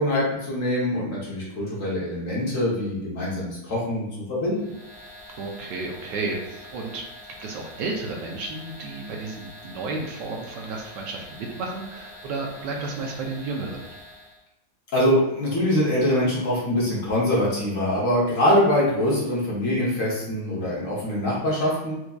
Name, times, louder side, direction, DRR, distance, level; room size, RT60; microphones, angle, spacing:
voice 1, 0.0-4.7 14.9-21.9, left 1 dB, 50° left, -5 dB, 1.2 m, -24 dB
sound 1, 4.5-14.4, left 1 dB, 70° left, 1.7 m, -45 dB
voice 2, 5.4-7.1 7.4-13.8, right 3 dB, 75° right, 1 dB, 1.2 m, -32 dB
4.5 x 2.6 x 2.3 m, 0.97 s
omnidirectional pair, 2.0 m